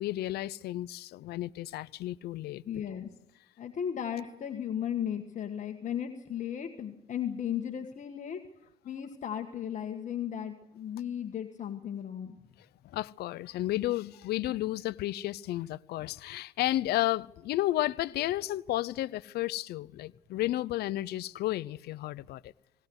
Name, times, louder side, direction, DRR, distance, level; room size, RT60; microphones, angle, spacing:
voice 1, 0.0-2.6 12.9-22.5, left 15 dB, 75° left, 0.7 m, -32 dB
voice 2, 2.6-3.1 3.6-8.4 8.8-12.4, left 9 dB, 45° left, 1.7 m, -35 dB
19.0 x 18.5 x 8.1 m
cardioid pair, 110°, 17 cm